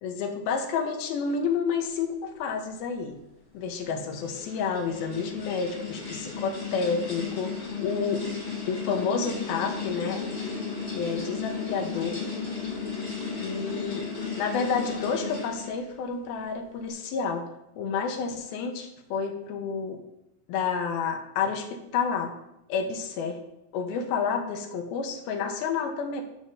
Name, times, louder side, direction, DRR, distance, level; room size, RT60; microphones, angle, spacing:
voice 1, 0.0-3.2 3.5-8.2 8.7-10.3 10.9-12.3 13.4-14.1 14.4-17.5 17.8-20.0 20.5-22.3 22.7-23.4 23.7-26.2, left 5 dB, 75° left, 4 dB, 2.5 m, -30 dB
sound 1, 3.7-15.8, left 5 dB, 25° left, 3.2 m, -35 dB
13.5 x 5.9 x 2.6 m, 0.85 s
omnidirectional pair, 4.8 m